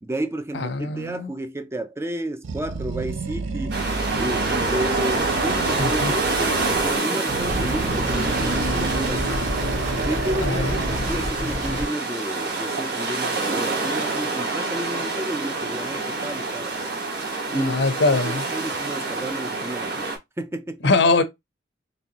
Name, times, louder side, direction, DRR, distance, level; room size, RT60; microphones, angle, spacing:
voice 1, 0.0-3.8 4.2-9.4 10.0-16.9 17.5-17.7 18.1-20.9, right 1 dB, 15° right, 0.4 m, -31 dB
voice 2, 0.5-1.3 5.8-6.1 10.4-11.1 17.5-18.5 20.8-21.2, left 3 dB, 65° left, 0.6 m, -23 dB
Animal, 2.4-7.0 7.3-11.2, right 3 dB, 90° right, 0.5 m, -30 dB
sound 1, 3.7-20.2, right 3 dB, 60° right, 1.6 m, -27 dB
sound 2, 7.5-11.9, equal, 40° right, 1.4 m, -29 dB
4.1 x 3.2 x 2.8 m
head